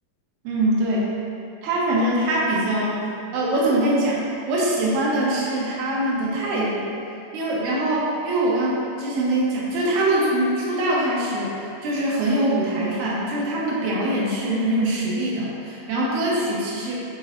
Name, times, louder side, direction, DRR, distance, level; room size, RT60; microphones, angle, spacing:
voice 1, 0.4-1.0 1.6-3.0 3.3-4.2 4.5-6.8 7.3-17.0, right 1 dB, 70° right, -5 dB, 2.5 m, -23 dB
11.5 x 4.8 x 2.7 m, 2.6 s
omnidirectional pair, 4.0 m